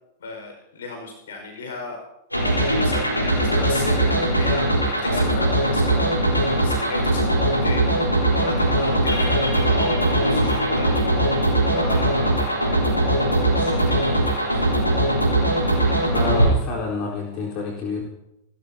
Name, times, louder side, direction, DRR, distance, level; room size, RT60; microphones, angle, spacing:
voice 1, 0.2-2.0 2.8-7.9 8.4-9.6 10.2-10.9 11.7-12.8 13.5-14.0 14.5-14.7, left 4 dB, 65° left, 3 dB, 5.2 m, -34 dB
sound 1, 2.3-16.5, right 1 dB, 90° left, 3.9 m, -20 dB
voice 2, 16.1-18.0, left 4 dB, 40° left, -3 dB, 4.1 m, -28 dB
29.5 x 13.5 x 2.9 m, 0.85 s
figure-of-eight pair, 95°, 0 cm